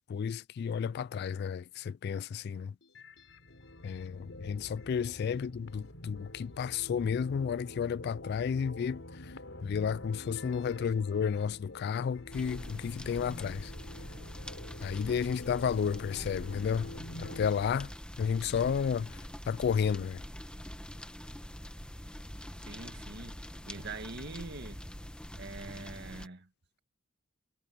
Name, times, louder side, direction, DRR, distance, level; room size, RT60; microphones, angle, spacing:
voice 1, 0.0-2.7 3.8-9.3 9.6-13.7 14.8-16.9 17.2-17.9 18.2-19.2 19.5-20.2, left 7 dB, 55° left, 0.3 m, -32 dB
sound 1, 2.8-17.5, left 1 dB, 75° left, 4.3 m, -47 dB
sound 2, 12.3-26.3, equal, 5° left, 1.1 m, -45 dB
voice 2, 22.6-24.9 25.4-26.5, right 3 dB, 60° right, 1.8 m, -44 dB
head